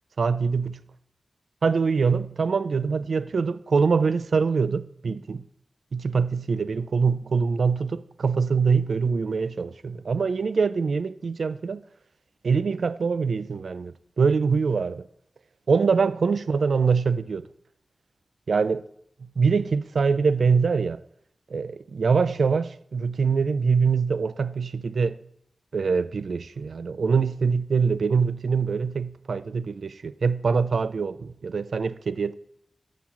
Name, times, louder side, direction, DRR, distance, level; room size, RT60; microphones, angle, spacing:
voice 1, 0.2-0.7 1.6-5.4 5.9-11.8 12.4-15.1 15.7-17.5 18.5-18.8 19.4-21.0 21.5-25.2 25.7-32.3, right 5 dB, 80° right, 0.3 m, -24 dB
7.1 x 5.7 x 7.3 m
wide cardioid pair, 65°, 0 cm